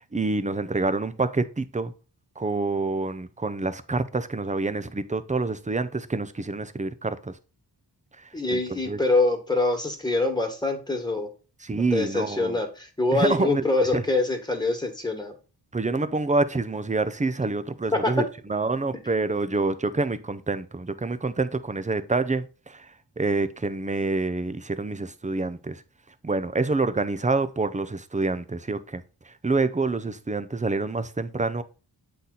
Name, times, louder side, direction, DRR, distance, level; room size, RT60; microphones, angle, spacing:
voice 1, 0.0-1.9 2.4-7.4 8.2-9.0 11.6-12.6 13.1-14.0 15.7-25.8 26.2-31.6, right 3 dB, 20° right, 0.6 m, -27 dB
voice 2, 8.3-11.3 11.9-15.3 17.9-18.1, left 2 dB, 10° left, 1.8 m, -25 dB
8.0 x 4.2 x 4.0 m
wide cardioid pair, 80°, 41 cm